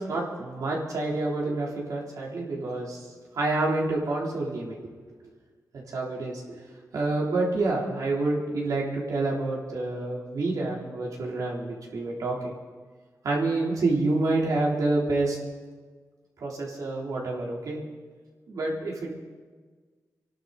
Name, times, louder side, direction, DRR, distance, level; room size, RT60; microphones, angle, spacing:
voice 1, 0.0-3.1 3.3-4.8 5.9-6.6 6.9-12.5 13.2-15.4 16.4-17.8 18.5-19.1, right 2 dB, 70° right, -2 dB, 3.7 m, -28 dB
28.5 x 11.5 x 4.2 m, 1.5 s
wide cardioid pair, 145°, 6 cm